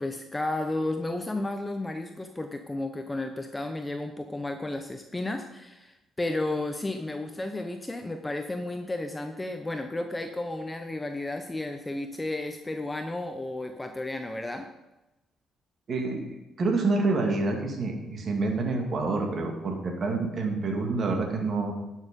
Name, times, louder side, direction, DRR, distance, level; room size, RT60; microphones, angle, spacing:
voice 1, 0.0-14.7, left 2 dB, 15° left, 6 dB, 0.7 m, -33 dB
voice 2, 15.9-21.7, right 3 dB, 45° right, 2 dB, 2.1 m, -28 dB
11.0 x 6.5 x 5.3 m, 0.99 s
cardioid pair, 95°, 0 cm